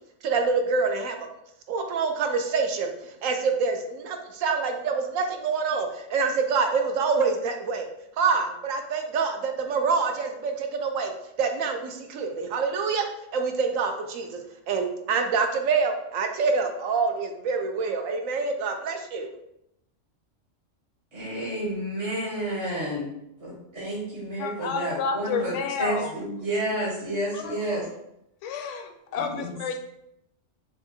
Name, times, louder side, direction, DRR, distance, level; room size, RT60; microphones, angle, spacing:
voice 1, 0.2-1.2 1.7-7.9 8.2-11.1 11.4-13.1 13.3-14.4 14.7-19.3, right 4 dB, 85° right, 5 dB, 1.0 m, -26 dB
voice 2, 21.1-23.1 23.4-25.5 25.8-27.8 29.3-29.6, right 1 dB, 55° right, -7 dB, 1.4 m, -30 dB
voice 3, 24.4-26.1 27.3-27.6 28.4-29.8, left 5 dB, 70° left, 6 dB, 0.9 m, -30 dB
6.2 x 2.4 x 2.6 m, 0.82 s
omnidirectional pair, 1.4 m